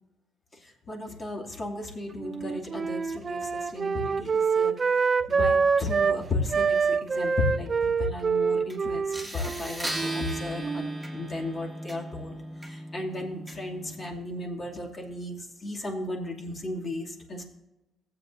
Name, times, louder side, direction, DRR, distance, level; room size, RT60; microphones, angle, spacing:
voice 1, 0.6-4.7 5.3-17.4, left 2 dB, 35° left, 0 dB, 2.4 m, -35 dB
Wind instrument woodwind instrument, 2.2-6.2 6.5-11.0, right 5 dB, 35° right, 0.3 m, -26 dB
sound 1, 8.7-8.8 9.1-14.1, right 1 dB, ahead, 2.3 m, -37 dB
16.0 x 8.1 x 2.6 m, 1.0 s
cardioid pair, 90°, 0 cm